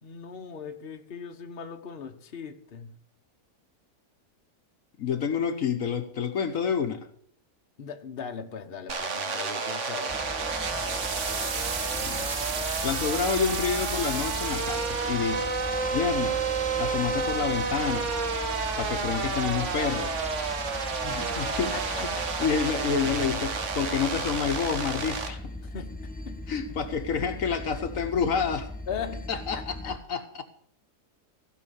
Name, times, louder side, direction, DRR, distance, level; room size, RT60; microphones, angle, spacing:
voice 1, 0.0-2.9 7.8-10.3 10.8-10.9 21.0-21.3 21.7-21.8 22.1-22.5 23.0-23.3 25.7-25.9 26.3-26.4 28.9-29.9, left 6 dB, 45° left, 5 dB, 1.1 m, -39 dB
voice 2, 5.0-7.1 12.0-12.3 12.8-15.6 15.9-16.4 16.8-18.1 18.8-20.6 21.1-22.1 22.4-25.5 26.5-28.7 29.3-30.4, left 6 dB, 65° left, 7 dB, 1.3 m, -29 dB
sound 1, 8.9-25.3, right 5 dB, 55° right, 1.5 m, -30 dB
sound 2, 10.1-30.0, left 1 dB, 15° left, 0.3 m, -39 dB
16.0 x 5.7 x 6.9 m, 0.65 s
omnidirectional pair, 1.6 m